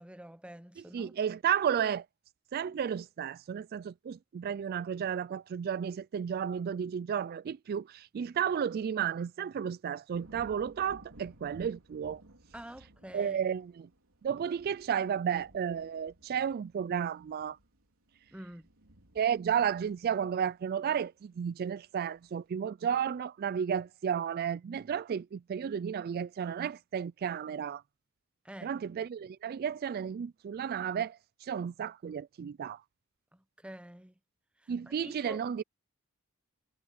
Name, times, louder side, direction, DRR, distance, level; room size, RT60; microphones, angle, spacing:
voice 1, 0.0-1.2 12.5-13.5 18.3-18.7 28.4-28.7 33.3-34.1 34.6-35.4, right 1 dB, 5° right, 0.7 m, -48 dB
voice 2, 0.9-2.0 2.5-12.2 13.1-13.9 14.2-17.6 19.2-27.8 28.6-32.8 34.7-35.6, right 8 dB, 45° right, 0.3 m, -33 dB
sound 1, 10.1-21.4 21.8-22.3, right 1 dB, 90° right, 3.2 m, -58 dB
head